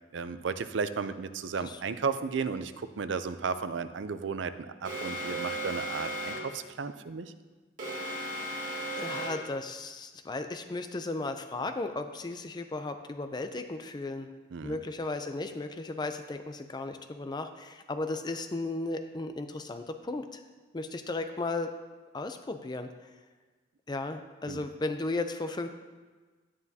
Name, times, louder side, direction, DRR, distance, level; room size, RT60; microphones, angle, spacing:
voice 1, 0.1-7.3 14.5-14.8 24.5-24.7, right 5 dB, 85° right, 11 dB, 0.5 m, -34 dB
Alarm, 4.8-6.6 7.8-9.6, equal, 45° right, 2.1 m, -35 dB
voice 2, 9.0-14.3 14.6-20.4 20.7-21.7 22.1-22.9 23.9-25.7, left 2 dB, 25° left, 7 dB, 0.4 m, -35 dB
11.0 x 9.4 x 2.8 m, 1.3 s
head